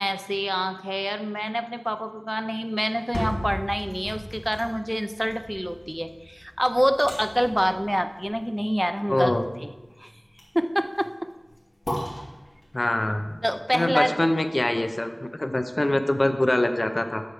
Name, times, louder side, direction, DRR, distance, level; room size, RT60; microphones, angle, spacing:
voice 1, 0.0-9.3 9.6-9.7 10.0-10.1 10.5-11.3 13.4-14.3, equal, ahead, 9 dB, 0.5 m, -26 dB
sound 1, 2.8-14.9 15.3-15.4, left 1 dB, 90° left, 2.1 m, -38 dB
voice 2, 9.1-9.4 12.7-13.3 13.7-17.2, left 1 dB, 50° left, 7 dB, 0.6 m, -24 dB
8.1 x 4.5 x 6.5 m, 1.1 s
wide cardioid pair, 50°, 0 cm